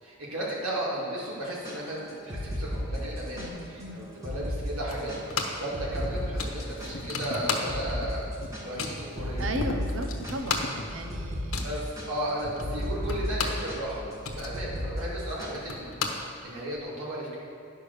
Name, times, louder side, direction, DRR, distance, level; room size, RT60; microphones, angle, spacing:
voice 1, 0.0-5.1 5.6-9.5 11.6-15.9 16.4-17.3, right 1 dB, 85° right, -6 dB, 2.6 m, -35 dB
sound 1, 1.5-3.5 3.8-3.9 4.2-4.6 4.9-7.3 7.7-8.0 8.3-15.6, equal, 15° right, 1.5 m, -34 dB
sound 2, 2.2-2.3 3.0-11.0, left 1 dB, 55° left, 0.9 m, -42 dB
voice 2, 3.4-4.1 9.4-11.6, right 1 dB, 65° right, 5 dB, 0.9 m, -36 dB
sound 3, 4.9-5.7 6.0-6.1 6.4-8.1 8.3-9.1 9.6-9.7 9.9-13.7 14.0-16.8, left 5 dB, 80° left, 1.1 m, -34 dB
10.0 x 5.6 x 6.6 m, 2.5 s
head